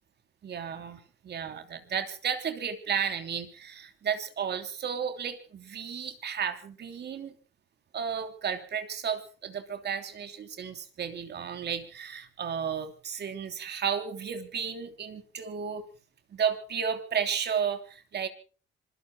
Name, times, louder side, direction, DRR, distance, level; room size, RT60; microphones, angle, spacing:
voice 1, 0.4-7.3 7.9-15.9 16.3-18.3, right 7 dB, 55° right, 8 dB, 3.1 m, -33 dB
26.5 x 22.0 x 2.2 m, 0.37 s
cardioid pair, 90°, 20 cm